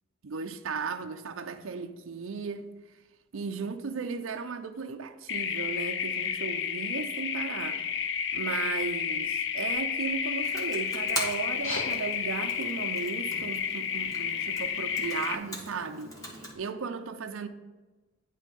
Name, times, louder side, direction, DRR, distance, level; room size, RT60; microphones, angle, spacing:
voice 1, 0.2-2.7 3.3-7.8 8.3-17.5, right 5 dB, 75° right, 0.6 m, -36 dB
sound 1, 5.3-15.4, left 8 dB, 60° left, 0.5 m, -31 dB
Computer keyboard, 10.4-16.5, equal, 15° left, 1.4 m, -41 dB
sound 2, 11.4-16.4, left 1 dB, 85° left, 2.0 m, -45 dB
10.0 x 4.1 x 5.2 m
head